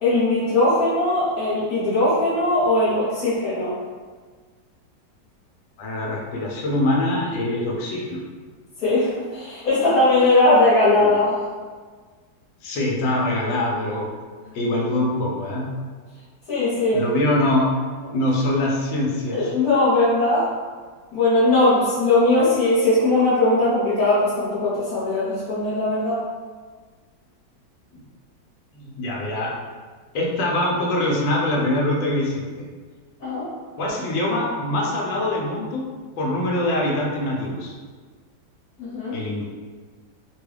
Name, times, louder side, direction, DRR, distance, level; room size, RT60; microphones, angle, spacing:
voice 1, 0.0-3.7 8.8-11.3 16.5-17.0 18.1-18.2 19.3-20.5 21.1-26.2 33.2-33.5 38.8-39.2, left 2 dB, 55° left, -11 dB, 1.5 m, -19 dB
voice 2, 5.8-8.2 11.0-11.1 12.6-14.0 14.5-15.7 16.9-17.7 18.1-19.5 27.9-28.0 28.7-29.5 30.1-32.6 33.8-35.8 36.2-37.7 39.1-39.4, left 1 dB, 80° left, -2 dB, 1.4 m, -23 dB
3.5 x 2.3 x 3.2 m, 1.5 s
omnidirectional pair, 2.0 m